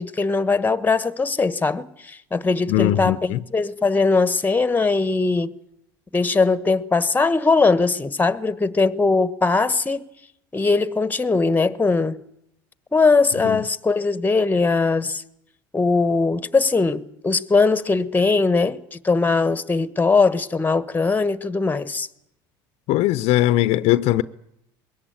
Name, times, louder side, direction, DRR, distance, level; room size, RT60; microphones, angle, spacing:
voice 1, 0.0-5.5 6.1-10.1 10.5-12.2 12.9-15.2 15.7-22.1, left 4 dB, 15° left, 1.3 m, -20 dB
voice 2, 2.7-3.4 13.4-13.6 22.9-24.2, left 15 dB, 65° left, 0.8 m, -20 dB
22.0 x 17.0 x 9.5 m
supercardioid pair, 85°, 11 cm